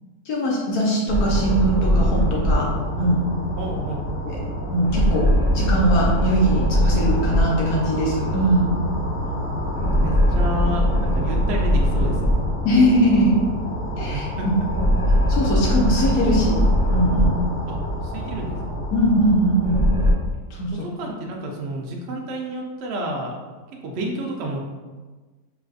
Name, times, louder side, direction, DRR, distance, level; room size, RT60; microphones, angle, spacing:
voice 1, 0.3-2.7 3.0-3.2 4.3-4.4 4.7-8.7 12.6-13.4 14.0-14.5 15.3-16.5 16.9-17.3 18.9-19.8 20.6-20.9, equal, 70° left, -3 dB, 1.2 m, -21 dB
sound 1, 1.1-20.1, equal, 30° left, 1.2 m, -22 dB
voice 2, 3.6-4.1 9.2-9.5 9.8-12.4 14.1-14.5 17.7-17.8 18.0-18.8 20.7-23.3 23.8-24.6, right 1 dB, 65° right, 0 dB, 0.6 m, -30 dB
3.8 x 2.5 x 2.4 m, 1.3 s
omnidirectional pair, 1.6 m